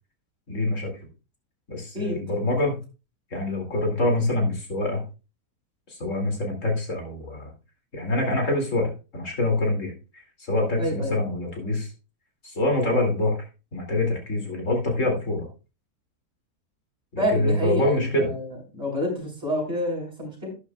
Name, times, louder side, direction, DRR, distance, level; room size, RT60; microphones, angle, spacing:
voice 1, 0.5-0.9 1.7-2.8 3.3-5.0 5.9-7.5 7.9-11.9 12.4-13.4 13.7-15.5 17.1-18.3, left 1 dB, 50° left, 2 dB, 3.1 m, -25 dB
voice 2, 10.8-11.2 17.2-18.5 18.7-20.5, left 1 dB, 40° right, -1 dB, 5.1 m, -28 dB
12.0 x 9.8 x 2.4 m, 0.31 s
omnidirectional pair, 1.7 m